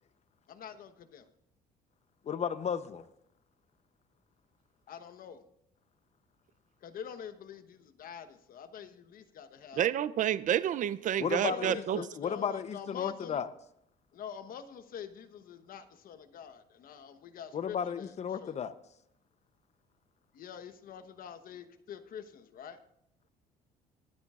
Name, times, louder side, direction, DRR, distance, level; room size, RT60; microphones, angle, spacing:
voice 1, 0.5-1.3 4.9-5.4 6.8-9.9 11.4-13.4 14.1-18.6 20.3-22.8, left 8 dB, 60° left, 10 dB, 1.1 m, -46 dB
voice 2, 2.3-3.0 11.2-13.5 17.5-18.7, left 7 dB, 40° left, 13 dB, 0.8 m, -34 dB
voice 3, 9.8-12.0, right 10 dB, 50° right, 16 dB, 0.5 m, -29 dB
22.0 x 9.9 x 2.5 m, 0.74 s
cardioid pair, 110°, 17 cm